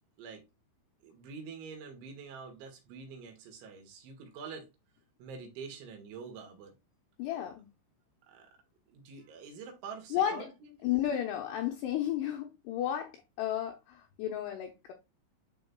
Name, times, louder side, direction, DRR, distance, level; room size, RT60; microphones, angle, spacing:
voice 1, 1.0-4.7 5.2-6.7 8.3-8.5 8.9-10.7, right 5 dB, 75° right, 3.8 m, -46 dB
voice 2, 7.2-7.7 10.1-10.5 10.8-14.9, left 11 dB, 75° left, 2.5 m, -33 dB
11.0 x 4.0 x 2.2 m
omnidirectional pair, 5.5 m